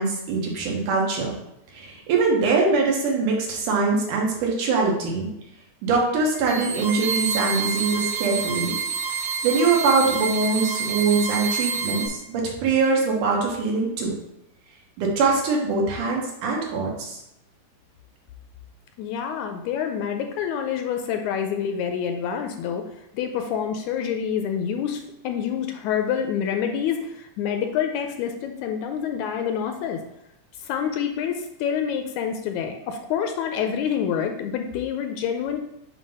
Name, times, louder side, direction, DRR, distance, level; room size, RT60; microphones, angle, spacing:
voice 1, 0.0-1.3 1.7-5.3 5.8-8.8 9.4-14.2 15.0-17.2, right 4 dB, 80° right, -1 dB, 2.8 m, -23 dB
sound 1, 6.3-12.1, right 5 dB, 65° right, 0.9 m, -28 dB
voice 2, 19.0-22.8 23.1-30.0 30.6-35.6, left 8 dB, 80° left, 5 dB, 1.8 m, -27 dB
7.3 x 2.9 x 5.4 m, 0.84 s
omnidirectional pair, 3.6 m